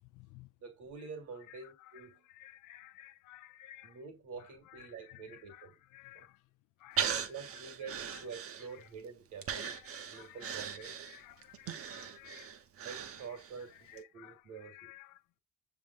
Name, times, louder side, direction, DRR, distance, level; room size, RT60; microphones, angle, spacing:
voice 1, 0.0-0.5 1.5-4.0 4.7-6.4 6.8-7.3 7.8-8.2 8.8-8.9 9.6-12.5 13.3-13.4 13.8-15.2, left 15 dB, 85° left, 0.5 m, -55 dB
voice 2, 0.6-2.3 3.8-5.8 6.1-6.3 7.3-9.8 10.1-11.0 12.8-14.9, right 5 dB, 75° right, 1.8 m, -47 dB
Breathing, 7.0-8.9 9.4-13.6 14.0-14.1, right 7 dB, 50° right, 0.7 m, -39 dB
6.3 x 3.5 x 2.2 m
cardioid pair, 90°, 30 cm